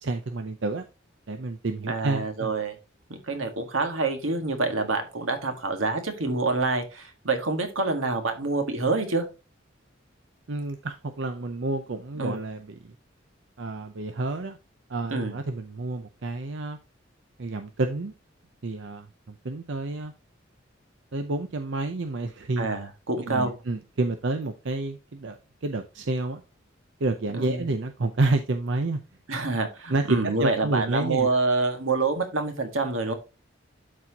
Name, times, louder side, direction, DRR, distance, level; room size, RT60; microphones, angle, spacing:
voice 1, 0.0-0.9 1.3-2.5 10.5-12.9 13.6-14.6 14.9-16.8 17.4-18.1 18.6-20.1 21.1-22.7 23.2-26.4 27.0-29.0 29.9-31.3, right 2 dB, 65° right, 0.6 m, -29 dB
voice 2, 1.9-2.7 3.3-9.2 12.2-12.4 15.1-15.3 22.6-23.5 27.4-27.6 29.3-33.1, right 3 dB, 85° right, 1.7 m, -27 dB
12.0 x 4.3 x 2.8 m
head